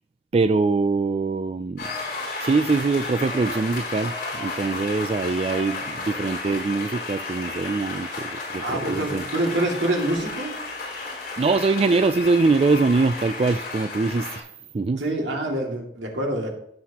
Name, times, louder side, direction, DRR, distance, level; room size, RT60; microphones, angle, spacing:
voice 1, 0.3-1.8 2.4-9.2 10.9-14.5 14.7-15.0, right 3 dB, 35° right, 11 dB, 0.3 m, -23 dB
sound 1, 1.8-14.4, left 3 dB, 55° left, 4.8 m, -33 dB
voice 2, 8.6-10.6 15.0-16.5, right 1 dB, 80° right, 1 dB, 2.3 m, -26 dB
16.0 x 7.7 x 2.9 m, 0.72 s
head